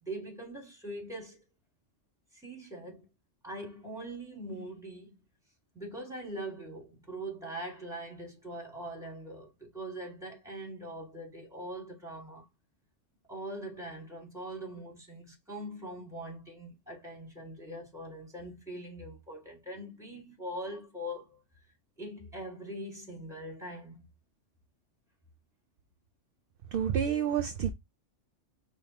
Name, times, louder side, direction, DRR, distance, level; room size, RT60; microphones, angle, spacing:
voice 1, 0.0-1.4 2.3-3.1 3.4-5.1 5.7-12.4 13.3-21.4 22.0-24.0, right 1 dB, 5° right, 2.3 m, -42 dB
voice 2, 26.7-27.7, right 8 dB, 60° right, 0.6 m, -29 dB
5.0 x 2.9 x 3.1 m
omnidirectional pair, 1.2 m